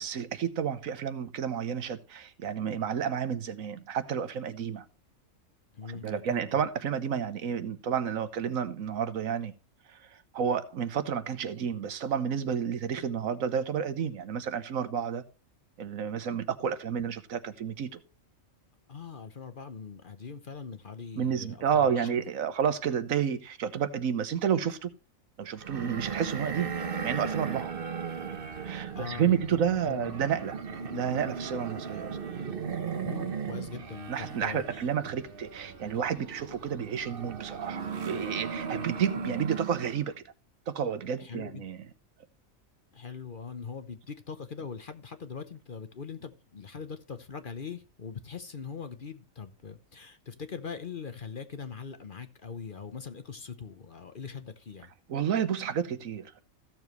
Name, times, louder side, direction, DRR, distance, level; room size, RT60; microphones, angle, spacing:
voice 1, 0.0-4.8 6.0-9.5 10.3-15.2 15.8-18.0 21.2-24.9 25.4-27.7 28.6-30.6 30.9-32.2 34.1-40.1 40.7-41.8 55.1-56.4, right 8 dB, 75° right, 1.3 m, -30 dB
voice 2, 5.7-6.6 18.9-22.2 28.9-29.4 29.8-30.1 33.0-34.9 41.2-41.6 42.9-54.9, left 5 dB, 45° left, 0.9 m, -41 dB
sound 1, 25.6-40.1, right 6 dB, 45° right, 1.1 m, -37 dB
15.0 x 7.1 x 3.1 m
omnidirectional pair, 1.4 m